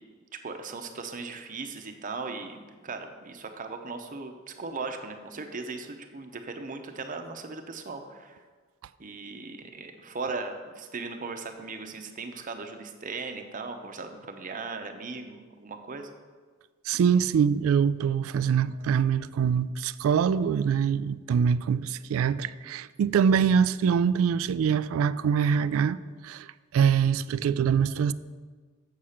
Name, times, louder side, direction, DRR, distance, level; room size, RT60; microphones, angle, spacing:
voice 1, 0.4-2.6 2.8-8.4 9.0-16.1, right 4 dB, 40° right, 0.8 m, -38 dB
voice 2, 16.9-26.0 26.2-26.5 26.7-28.1, right 7 dB, 85° right, 0.3 m, -24 dB
7.3 x 6.6 x 5.7 m
head